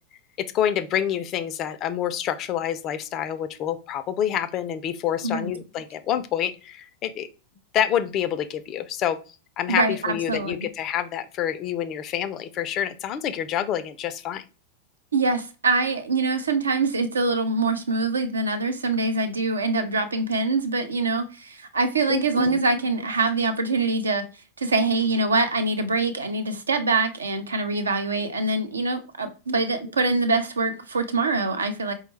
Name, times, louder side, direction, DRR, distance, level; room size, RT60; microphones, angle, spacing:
voice 1, 0.5-7.3 7.7-9.2 9.6-14.4 19.8-19.9 22.1-22.6 29.2-29.3, left 10 dB, 35° left, 0.3 m, -27 dB
voice 2, 9.7-10.7 15.1-24.3 24.6-31.9, right 3 dB, 75° right, 0.5 m, -24 dB
4.4 x 2.1 x 3.1 m
figure-of-eight pair, 90°, 0 cm